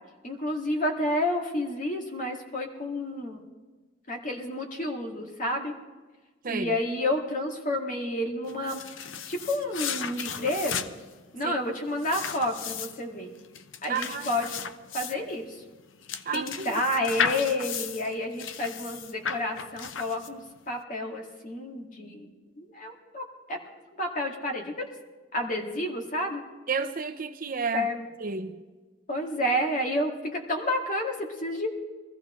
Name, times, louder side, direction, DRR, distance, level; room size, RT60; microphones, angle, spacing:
voice 1, 0.2-3.4 4.1-5.7 6.5-8.8 9.3-10.9 11.3-13.3 13.8-14.5 14.9-15.6 16.3-20.4 20.7-22.3 22.6-23.6 24.0-24.9 25.3-26.4 27.7-28.1 29.1-31.7, left 1 dB, 45° left, 2 dB, 2.1 m, -30 dB
sound 1, 8.5-20.6, left 7 dB, 80° left, 0.7 m, -35 dB
voice 2, 13.9-14.3 16.3-16.8 26.7-27.9 28.2-28.5, right 5 dB, 45° right, 6 dB, 0.8 m, -31 dB
22.5 x 14.5 x 3.2 m, 1.3 s
head